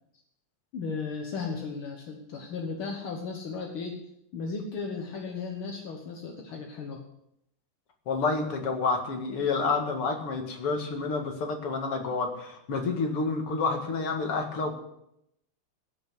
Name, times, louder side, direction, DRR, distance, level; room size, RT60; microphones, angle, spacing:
voice 1, 0.7-4.0 4.3-7.0, left 4 dB, 70° left, 2 dB, 2.2 m, -35 dB
voice 2, 8.1-14.7, left 4 dB, 90° left, 3 dB, 2.9 m, -29 dB
15.5 x 5.9 x 9.5 m, 0.78 s
omnidirectional pair, 2.4 m